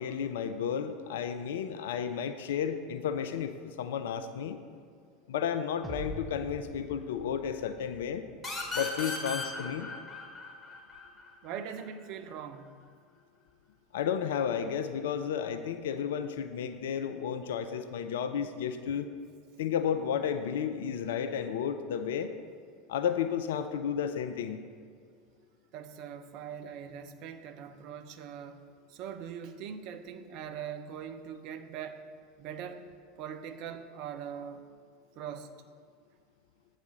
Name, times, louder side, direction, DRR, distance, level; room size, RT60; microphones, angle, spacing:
voice 1, 0.0-4.6 5.3-8.3 8.7-9.9 13.9-19.1 19.6-22.3 22.9-24.6, left 8 dB, 65° left, 9 dB, 0.3 m, -32 dB
sound 1, 5.8-9.1, right 2 dB, 5° right, 0.7 m, -45 dB
sound 2, 8.4-11.8, left 3 dB, 20° left, 1.7 m, -37 dB
voice 2, 11.4-12.8 25.7-28.6 28.9-32.0 32.4-32.9 33.2-34.7 35.2-35.5, right 8 dB, 50° right, 9 dB, 0.6 m, -41 dB
8.2 x 4.1 x 6.4 m, 2.2 s
figure-of-eight pair, 75°, 0 cm